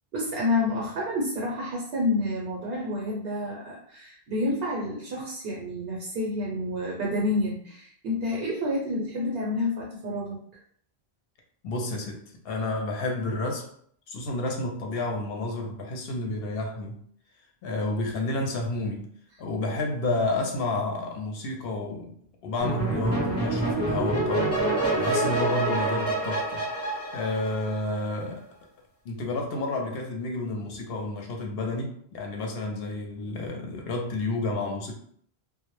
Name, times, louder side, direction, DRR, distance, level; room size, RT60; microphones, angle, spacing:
voice 1, 0.1-10.4, left 2 dB, 70° right, -3 dB, 0.8 m, -29 dB
voice 2, 11.6-13.7 14.1-17.0 17.6-19.1 19.4-22.1 22.4-24.5 25.0-26.7 27.1-28.4 29.0-34.9, left 2 dB, 70° left, 1 dB, 0.8 m, -30 dB
sound 1, 22.6-28.0, right 2 dB, 20° left, 0.5 m, -27 dB
2.0 x 2.0 x 3.0 m, 0.62 s
omnidirectional pair, 1.1 m